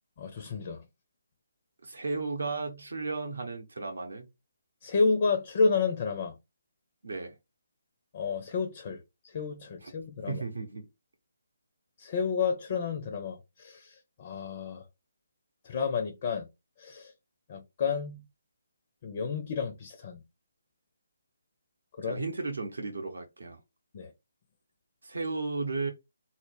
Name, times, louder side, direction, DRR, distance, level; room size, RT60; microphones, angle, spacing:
voice 1, 0.2-0.8 4.8-6.3 8.1-9.0 9.3-10.4 12.0-13.9 14.2-14.8 15.6-16.5 16.8-17.1 17.5-18.2 19.0-20.2 22.0-22.2 23.9-24.1, left 5 dB, 40° left, 0.4 m, -30 dB
voice 2, 1.8-4.3 7.0-7.3 9.8-9.9 10.3-10.9 22.0-23.6 25.0-25.9, right 3 dB, 70° right, 0.6 m, -34 dB
2.1 x 2.0 x 3.1 m
figure-of-eight pair, 145°, 0 cm